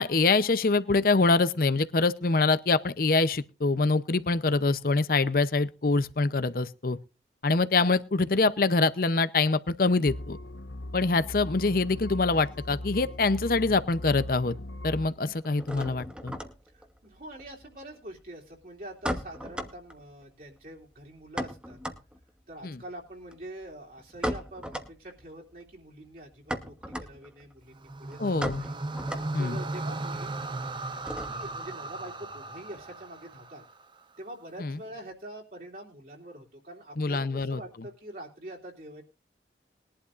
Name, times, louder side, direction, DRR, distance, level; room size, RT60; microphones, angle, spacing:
voice 1, 0.0-7.0 7.4-10.4 10.9-14.6 14.8-16.3 22.6-22.8 28.2-28.6 29.3-29.6 34.6-34.8 37.0-37.6, left 3 dB, 55° left, 0.7 m, -25 dB
sound 1, 10.1-15.1, left 1 dB, 85° left, 0.8 m, -39 dB
sound 2, 12.0-13.4 13.7-14.4 14.6-31.6, equal, 5° right, 1.1 m, -39 dB
voice 2, 16.7-21.8 22.5-28.7 29.4-30.5 31.3-33.6 34.2-39.0, right 1 dB, 55° right, 3.1 m, -45 dB
sound 3, 27.7-34.0, right 2 dB, 25° right, 0.7 m, -36 dB
21.0 x 11.5 x 2.5 m
head